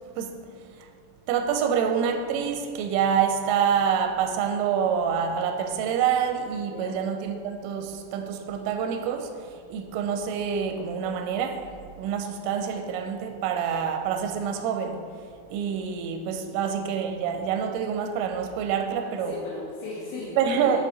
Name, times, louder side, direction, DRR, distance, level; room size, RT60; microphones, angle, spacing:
voice 1, 0.2-0.9 1.3-19.4 20.4-20.8, right 7 dB, 85° right, 5 dB, 3.0 m, -27 dB
voice 2, 6.6-7.0 16.5-16.6 19.3-20.8, left 3 dB, 75° left, -6 dB, 3.0 m, -37 dB
7.1 x 4.7 x 3.9 m, 2.1 s
omnidirectional pair, 5.7 m